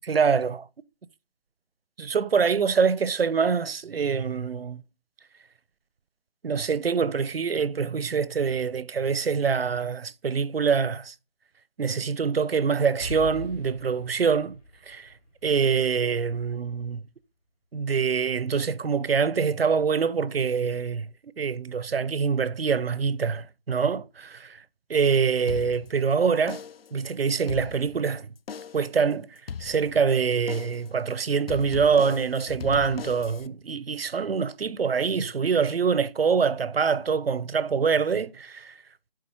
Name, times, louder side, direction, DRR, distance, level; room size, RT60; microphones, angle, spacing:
voice 1, 0.0-0.7 2.0-4.8 6.4-11.1 11.8-14.6 14.9-15.1 15.4-17.0 17.7-21.1 21.4-24.6 24.9-26.6 26.9-28.3 28.7-29.3 29.6-38.7, right 6 dB, 80° right, 0.6 m, -25 dB
Explosion, 13.0-16.8, left 1 dB, 40° left, 3.2 m, -41 dB
sound 1, 25.5-26.1 26.5-27.0 27.4-28.1 28.5-29.0 29.5-30.1 30.5-31.0 31.5-33.5, left 6 dB, 80° left, 0.4 m, -38 dB
11.0 x 4.0 x 2.8 m
figure-of-eight pair, 150°, 29 cm